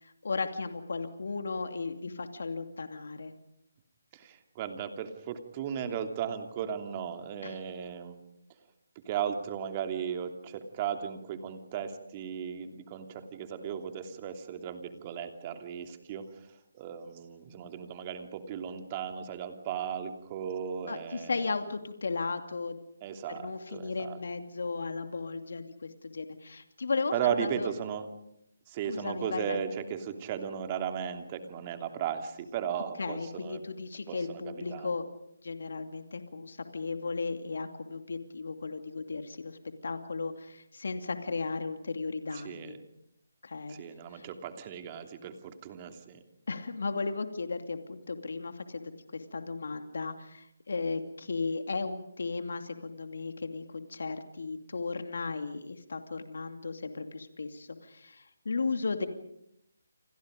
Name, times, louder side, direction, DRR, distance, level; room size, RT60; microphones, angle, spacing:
voice 1, 0.0-3.3 7.4-7.5 20.9-22.8 23.3-27.1 27.4-27.7 28.9-29.6 33.0-35.0 35.4-42.8 43.4-43.8 44.1-44.3 46.5-59.1, left 4 dB, 70° left, 7 dB, 2.6 m, -35 dB
voice 2, 4.1-8.3 8.9-21.5 23.0-24.2 27.1-28.1 28.7-33.6 34.1-34.9 42.3-42.8 43.7-46.2, right 8 dB, 25° right, 6 dB, 2.9 m, -36 dB
29.5 x 26.5 x 5.2 m, 0.78 s
figure-of-eight pair, 155°, 0 cm